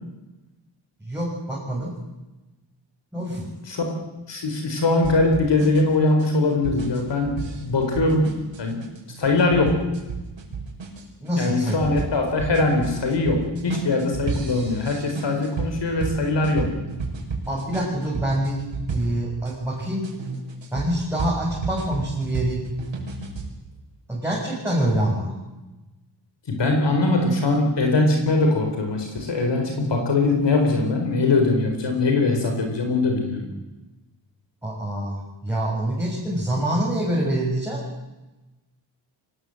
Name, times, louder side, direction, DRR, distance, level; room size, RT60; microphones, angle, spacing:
voice 1, 1.0-1.9 3.1-3.5 11.2-12.1 17.5-18.6 18.9-20.1 20.7-22.6 24.1-25.4 34.6-37.8, right 1 dB, 5° right, -6 dB, 6.9 m, -26 dB
voice 2, 4.3-8.3 8.6-8.8 9.2-9.8 11.4-16.7 26.5-33.5, left 2 dB, 65° left, 3 dB, 4.5 m, -21 dB
sound 1, 5.0-19.5 20.0-23.5, right 4 dB, 75° right, 6.1 m, -32 dB
25.0 x 19.5 x 7.9 m, 1.1 s
wide cardioid pair, 140°, 45 cm